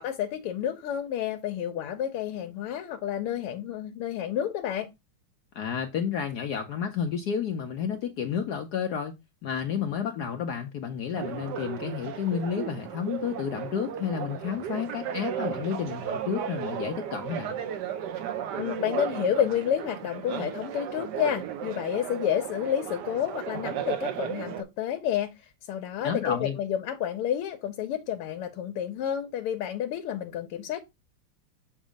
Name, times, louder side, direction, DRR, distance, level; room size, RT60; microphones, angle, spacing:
voice 1, 0.0-4.9 18.5-30.8, left 10 dB, 85° left, 1.6 m, -30 dB
voice 2, 5.5-9.1 9.4-17.6 26.0-26.6, left 7 dB, 70° left, 1.0 m, -31 dB
sound 1, 11.1-24.6, right 9 dB, 65° right, 1.1 m, -35 dB
7.2 x 2.7 x 5.0 m
omnidirectional pair, 2.4 m